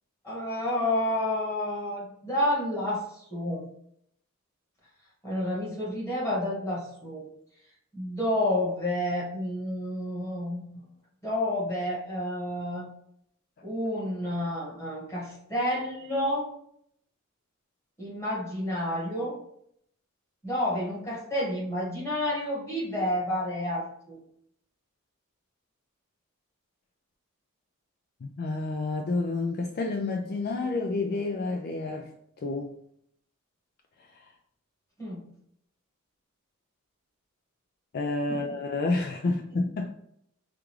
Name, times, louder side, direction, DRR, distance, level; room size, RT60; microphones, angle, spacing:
voice 1, 0.2-3.6 5.2-7.2 7.9-10.6 11.2-12.9 13.6-16.5 18.0-19.4 20.4-24.2 35.0-35.2 38.3-38.4, left 1 dB, 15° left, -5 dB, 1.5 m, -30 dB
voice 2, 28.2-32.1 32.4-32.7 37.9-39.9, left 3 dB, 45° left, 2 dB, 0.4 m, -29 dB
5.0 x 2.3 x 3.1 m, 0.71 s
head